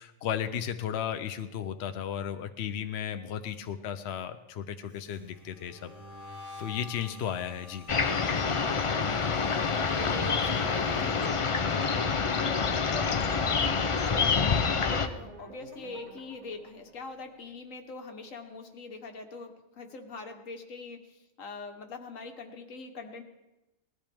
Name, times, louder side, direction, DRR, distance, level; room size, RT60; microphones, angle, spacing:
voice 1, 0.0-5.9 6.6-7.9 11.8-12.0, left 9 dB, 60° left, 8 dB, 0.8 m, -35 dB
sound 1, 4.9-14.0 14.3-14.7 15.1-16.6, left 2 dB, 90° right, 2.9 m, -51 dB
sound 2, 7.9-15.1, left 5 dB, 45° left, 0.4 m, -27 dB
voice 2, 9.4-23.2, left 3 dB, 80° left, 5 dB, 1.6 m, -43 dB
sound 3, 14.8-17.6, right 2 dB, 55° right, 2.7 m, -51 dB
19.0 x 13.5 x 3.5 m, 1.0 s
omnidirectional pair, 1.4 m